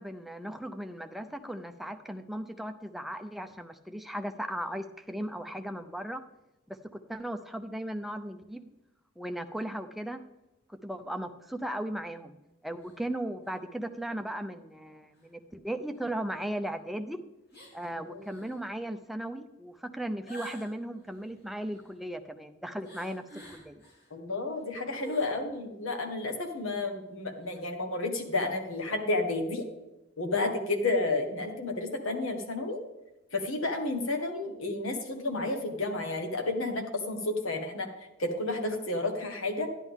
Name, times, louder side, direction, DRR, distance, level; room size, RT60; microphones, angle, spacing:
voice 1, 0.0-6.3 6.7-8.7 9.2-10.2 10.7-12.4 12.6-17.2 17.7-23.8, right 1 dB, ahead, 6 dB, 0.5 m, -37 dB
sound 1, 12.8-13.0 13.4-13.5 15.1-15.3 15.9-16.0 17.5-17.9 18.2-18.6 20.3-22.0 22.8-24.1 24.5-25.4 25.8-25.9 26.3-26.6 27.4-27.6, right 1 dB, 50° left, 3.0 m, -50 dB
voice 2, 24.1-29.6 30.2-32.8 33.3-37.9 38.2-39.7, left 2 dB, 75° left, 3 dB, 1.6 m, -31 dB
11.0 x 11.0 x 3.6 m, 1.0 s
head